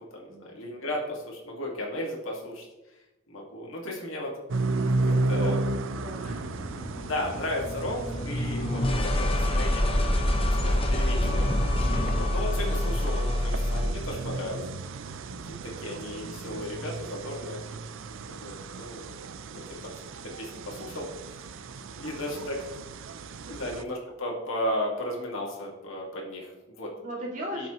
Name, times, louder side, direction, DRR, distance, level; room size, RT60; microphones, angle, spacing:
voice 1, 0.0-2.7 3.3-4.4 5.3-5.6 7.0-10.0 10.7-11.5 12.0-14.7 15.6-17.6 18.2-19.1 19.5-19.9 20.2-21.5 22.0-22.7 23.5-26.9 27.5-27.7, left 1 dB, 75° left, -1 dB, 1.9 m, -35 dB
sound 1, 4.5-23.8, right 2 dB, 70° right, 0.5 m, -34 dB
voice 2, 5.0-5.5 5.9-6.4 12.7-12.9 15.3-15.6 21.8-22.4 23.5-23.6 27.0-27.7, equal, 40° right, -3 dB, 2.4 m, -39 dB
sound 2, 6.2-14.1, left 1 dB, 25° left, 0.7 m, -27 dB
12.0 x 5.8 x 3.0 m, 1.0 s
head